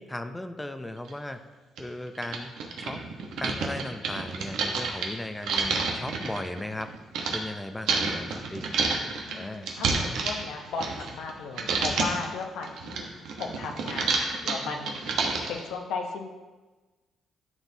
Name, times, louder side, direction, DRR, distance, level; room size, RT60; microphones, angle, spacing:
voice 1, 0.0-1.4 1.8-3.0 3.4-6.9 7.3-8.7 9.3-9.7, left 1 dB, 10° left, 8 dB, 0.5 m, -37 dB
sound 1, 1.1-1.2 1.8-1.9 2.2-7.4 7.9-11.3 11.6-12.2 12.6-15.6, right 4 dB, 80° right, 1.0 m, -29 dB
voice 2, 5.4-5.8 9.3-13.1 13.4-15.0 15.5-16.3, left 4 dB, 85° left, 2 dB, 0.8 m, -36 dB
11.5 x 4.5 x 2.8 m, 1.2 s
cardioid pair, 90°, 0 cm